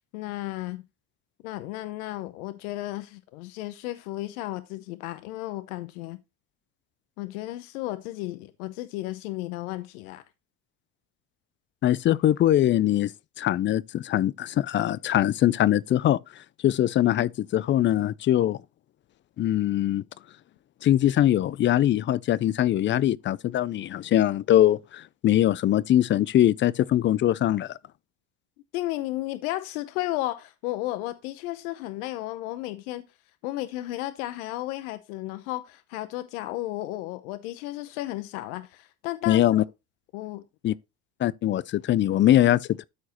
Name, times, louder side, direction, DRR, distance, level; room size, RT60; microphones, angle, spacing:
voice 1, 0.1-0.8 1.4-6.2 7.2-10.2 28.7-33.1 33.4-39.6 40.1-40.7, left 16 dB, 85° left, 0.9 m, -33 dB
voice 2, 11.8-13.1 13.4-16.2 16.6-18.6 19.4-20.0 20.8-27.7 39.3-39.6 40.6-40.7 41.2-42.8, left 12 dB, 30° left, 0.4 m, -22 dB
13.0 x 4.7 x 3.0 m
supercardioid pair, 100°, 42 cm